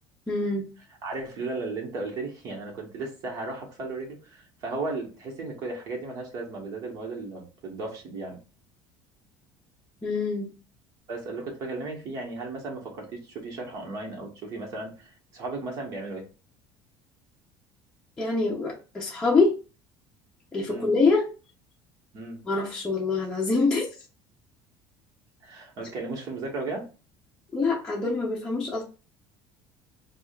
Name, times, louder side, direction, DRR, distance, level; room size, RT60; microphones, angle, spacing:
voice 1, 0.3-0.7 10.0-10.5 18.2-19.6 20.5-21.3 22.5-23.9 27.5-28.8, left 3 dB, 10° left, -5 dB, 0.8 m, -25 dB
voice 2, 1.0-8.4 11.1-16.2 20.7-20.9 22.1-22.4 25.4-26.9, right 3 dB, 45° right, 0 dB, 1.4 m, -35 dB
4.8 x 2.4 x 2.4 m, 0.33 s
cardioid pair, 155°, 8 cm